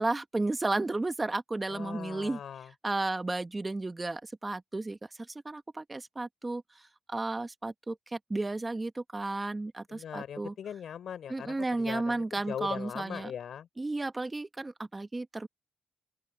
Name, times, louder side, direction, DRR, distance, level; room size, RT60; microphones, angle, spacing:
voice 1, 0.0-2.4 2.8-5.0 5.4-6.6 7.1-10.5 11.3-13.3 13.8-15.5, right 2 dB, 20° right, 1.3 m, -33 dB
voice 2, 1.7-2.7 9.9-13.7, left 8 dB, 65° left, 4.8 m, -40 dB
open air
cardioid pair, 120°, 0 cm